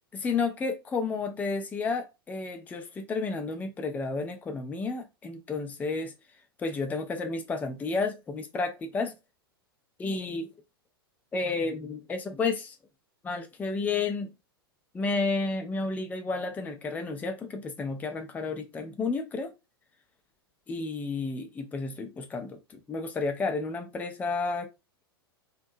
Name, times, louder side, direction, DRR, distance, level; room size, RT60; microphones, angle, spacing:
voice 1, 0.1-6.1 6.6-9.2 10.0-10.5 11.3-12.8 13.2-14.3 14.9-19.5 20.7-24.7, left 4 dB, 10° left, 0.4 m, -31 dB
2.6 x 2.2 x 2.5 m
figure-of-eight pair, 95°, 13 cm